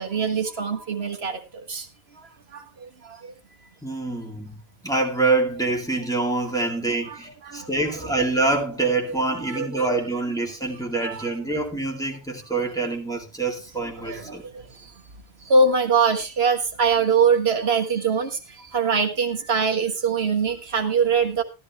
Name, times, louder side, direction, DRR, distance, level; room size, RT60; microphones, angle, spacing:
voice 1, 0.0-1.9 2.5-2.6 3.0-3.2 6.9-7.7 8.0-8.1 9.0-10.1 11.0-11.3 14.0-14.6 15.5-21.4, right 5 dB, 85° right, 1.7 m, -23 dB
voice 2, 3.8-4.6 4.8-14.4, right 3 dB, 5° left, 2.4 m, -25 dB
13.5 x 12.5 x 3.1 m
omnidirectional pair, 1.0 m